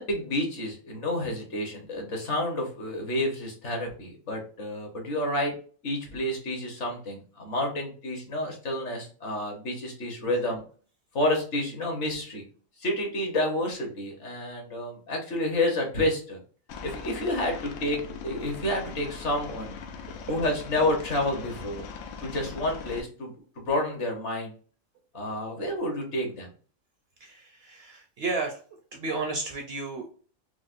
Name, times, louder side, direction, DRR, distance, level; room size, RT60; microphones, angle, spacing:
voice 1, 0.0-5.5 5.8-10.6 11.1-12.4 12.8-16.4 16.8-19.8 20.3-21.8 22.2-24.5 25.1-26.5, left 1 dB, 60° left, 2 dB, 1.3 m, -29 dB
voice 2, 10.2-10.5 20.1-20.4 27.2-28.6 28.9-30.1, right 3 dB, 60° right, 3 dB, 0.7 m, -33 dB
Aircraft, 16.7-23.0, left 5 dB, 80° left, 1.1 m, -40 dB
4.7 x 2.1 x 2.5 m, 0.41 s
omnidirectional pair, 1.4 m